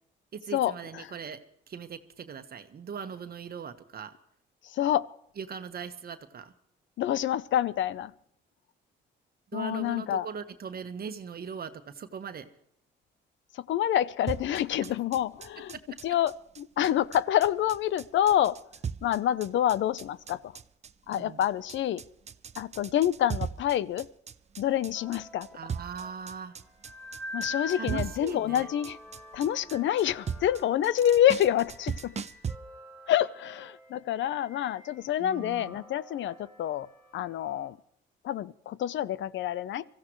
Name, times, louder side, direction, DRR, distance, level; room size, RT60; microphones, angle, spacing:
voice 1, 0.3-1.4 1.7-4.1 5.4-6.5 9.5-12.5 14.8-14.9 21.1-21.4 25.5-26.6 27.7-28.7 35.2-35.9, right 6 dB, 50° right, 8 dB, 1.3 m, -40 dB
voice 2, 4.6-5.1 7.0-8.1 9.5-10.3 13.5-15.8 16.0-18.6 19.0-20.5 21.1-22.0 22.6-24.1 24.6-25.5 27.3-29.0 29.3-32.1 33.1-36.9 37.1-37.8 38.2-39.9, left 11 dB, 70° left, 19 dB, 0.7 m, -27 dB
sound 1, 14.3-32.5, right 6 dB, 35° right, 0.6 m, -38 dB
sound 2, 24.9-37.7, left 2 dB, 5° left, 5.1 m, -46 dB
24.0 x 15.5 x 3.1 m, 0.73 s
cardioid pair, 90°, 20 cm